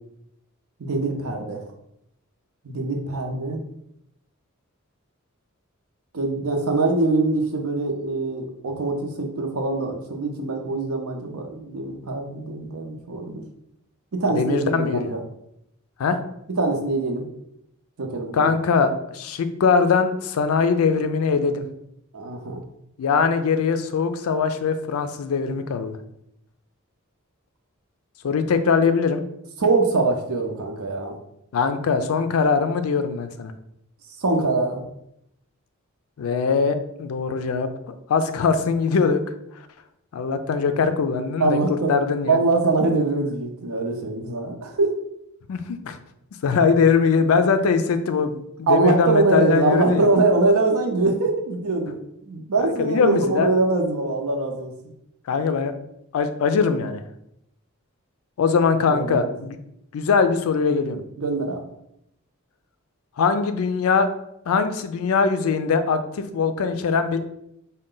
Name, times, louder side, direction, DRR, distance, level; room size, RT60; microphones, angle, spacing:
voice 1, 0.8-1.6 2.6-3.6 6.1-13.4 14.1-15.2 16.6-17.3 18.0-18.5 22.1-22.6 29.6-31.1 34.2-34.8 41.4-41.9 42.3-44.9 48.7-51.9 52.3-54.7 58.9-59.3 61.2-61.6, right 3 dB, 90° right, 3 dB, 0.7 m, -23 dB
voice 2, 14.3-15.1 16.0-16.2 18.3-21.7 23.0-26.0 28.2-29.2 31.5-33.5 36.2-39.2 40.1-41.6 41.9-42.4 45.5-46.0 46.4-50.1 52.6-53.5 55.3-55.7 56.1-57.0 58.4-59.6 59.9-61.0 63.2-64.1 64.5-67.2, left 5 dB, 85° left, 9 dB, 0.4 m, -21 dB
3.7 x 2.2 x 3.8 m, 0.79 s
head